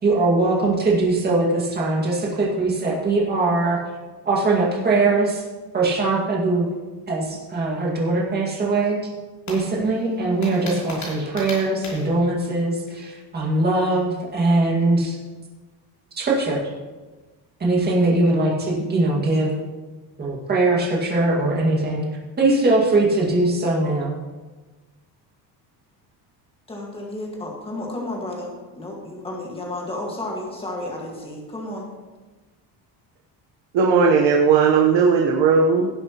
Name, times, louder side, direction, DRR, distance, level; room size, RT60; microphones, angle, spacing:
voice 1, 0.0-3.8 4.2-5.4 5.7-6.7 7.1-9.0 9.5-15.2 16.2-16.6 17.6-19.5 20.2-22.0 22.4-24.1, right 2 dB, 20° right, -3 dB, 2.1 m, -21 dB
sound 1, 9.5-12.1, left 2 dB, 40° left, 3.1 m, -36 dB
voice 2, 26.7-31.9, left 1 dB, 15° left, -2 dB, 1.8 m, -32 dB
voice 3, 33.7-35.9, right 5 dB, 85° right, 0 dB, 1.2 m, -17 dB
17.0 x 8.1 x 3.0 m, 1.3 s
cardioid pair, 180°, 42 cm